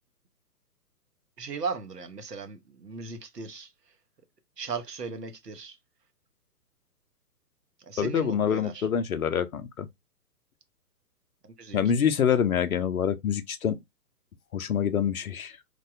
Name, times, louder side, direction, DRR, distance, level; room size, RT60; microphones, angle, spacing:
voice 1, 1.4-3.7 4.6-5.8 7.8-8.9 11.6-11.8, right 5 dB, 75° right, 0.9 m, -37 dB
voice 2, 8.0-9.9 11.7-13.8 14.5-15.6, left 8 dB, 60° left, 0.6 m, -26 dB
3.3 x 2.2 x 2.4 m
figure-of-eight pair, 125°, 49 cm